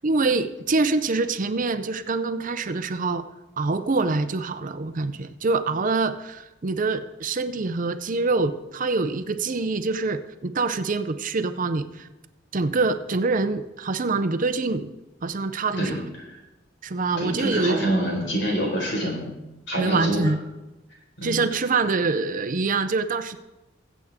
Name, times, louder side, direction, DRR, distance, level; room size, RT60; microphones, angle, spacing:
voice 1, 0.0-3.2 3.6-12.1 12.5-14.9 15.2-16.0 16.8-18.2 19.8-20.4 21.2-23.4, right 3 dB, 45° right, 11 dB, 0.6 m, -25 dB
voice 2, 17.2-19.3 19.7-20.2 21.2-21.4, right 1 dB, 75° left, -1 dB, 4.6 m, -26 dB
21.0 x 8.2 x 3.6 m, 1.0 s
head